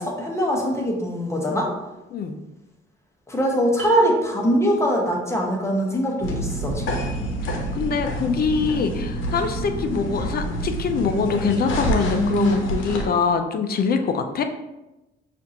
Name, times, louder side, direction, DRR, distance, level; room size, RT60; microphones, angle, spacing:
voice 1, 0.0-1.7 3.3-7.0, equal, 15° left, 0 dB, 1.0 m, -22 dB
sound 1, 3.8-5.0, right 2 dB, 75° right, 0.9 m, -29 dB
sound 2, 6.2-13.1, equal, 80° left, 0.8 m, -26 dB
voice 2, 7.8-14.4, left 5 dB, 50° left, 7 dB, 0.5 m, -23 dB
5.7 x 2.5 x 2.8 m, 0.99 s
cardioid pair, 90°, 20 cm